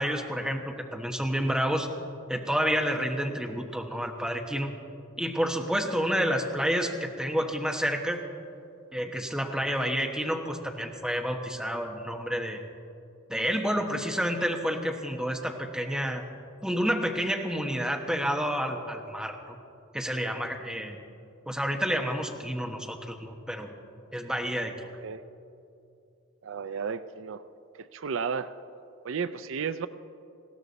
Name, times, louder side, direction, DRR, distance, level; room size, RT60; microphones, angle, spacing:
voice 1, 0.0-1.9 2.3-4.7 5.2-8.2 8.9-12.6 13.3-16.2 16.6-19.6 19.9-21.0 21.5-23.7 24.1-24.7, equal, 5° right, 2 dB, 1.2 m, -29 dB
voice 2, 24.8-25.2 26.4-27.4 27.7-28.5 29.0-29.9, right 6 dB, 70° right, 13 dB, 0.5 m, -33 dB
20.0 x 16.5 x 4.1 m, 2.6 s
head